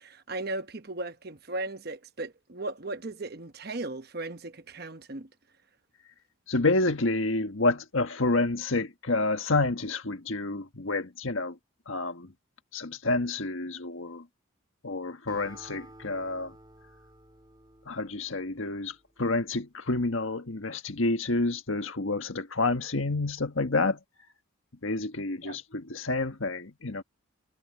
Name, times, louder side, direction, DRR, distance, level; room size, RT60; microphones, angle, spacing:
voice 1, 0.0-5.3 25.4-25.6, right 2 dB, 50° right, 1.0 m, -37 dB
voice 2, 6.5-11.6 11.9-12.3 12.7-14.2 14.8-16.5 17.9-24.0 24.8-27.0, left 2 dB, 80° left, 1.5 m, -29 dB
Acoustic guitar, 15.3-18.9, right 1 dB, 20° right, 3.8 m, -52 dB
head